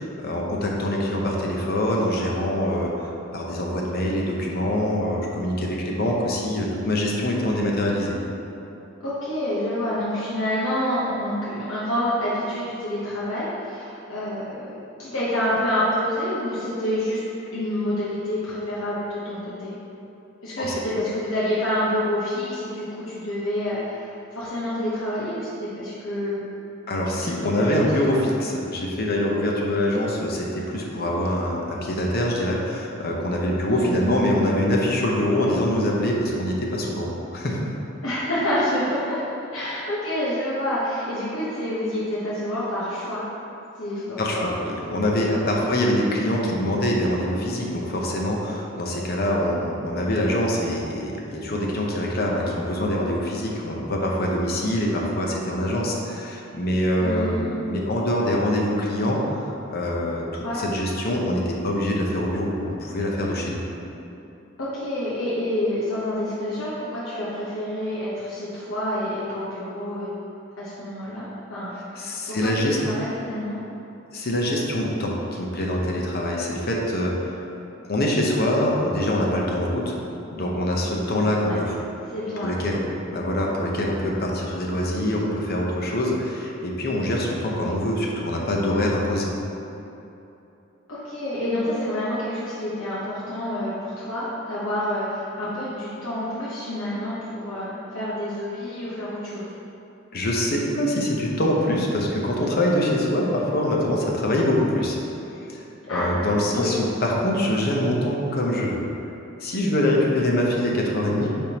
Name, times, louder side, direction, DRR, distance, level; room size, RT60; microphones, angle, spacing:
voice 1, 0.0-8.2 20.6-20.7 26.9-37.7 44.2-60.2 60.6-63.6 72.0-72.8 74.1-77.4 77.9-80.0 80.3-81.7 82.4-82.9 83.1-89.3 100.1-105.0 105.5-108.8 109.4-111.3, left 1 dB, 50° left, -2 dB, 0.8 m, -24 dB
voice 2, 9.0-17.2 17.5-19.8 20.4-26.5 27.2-28.2 33.7-34.3 38.0-43.2 43.8-44.7 45.3-45.7 57.0-57.6 60.4-60.6 64.6-70.1 70.6-73.6 81.4-81.6 82.1-82.6 90.9-99.5 105.9-106.1 106.5-106.8, left 1 dB, 85° left, -9 dB, 1.0 m, -28 dB
8.9 x 3.6 x 2.9 m, 2.9 s
head